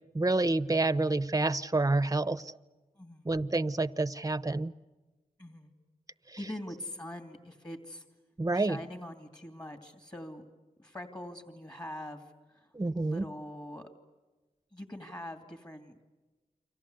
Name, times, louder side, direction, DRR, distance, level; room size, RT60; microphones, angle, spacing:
voice 1, 0.1-2.5 3.2-4.7 8.4-8.8 12.7-13.2, right 2 dB, 25° right, 16 dB, 0.8 m, -28 dB
voice 2, 3.0-3.3 5.4-5.7 6.4-8.0 8.5-10.4 10.8-12.7 12.9-13.9 14.7-16.0, left 1 dB, 25° left, 6 dB, 2.8 m, -43 dB
29.5 x 24.5 x 8.1 m, 1.2 s
wide cardioid pair, 55°, 15 cm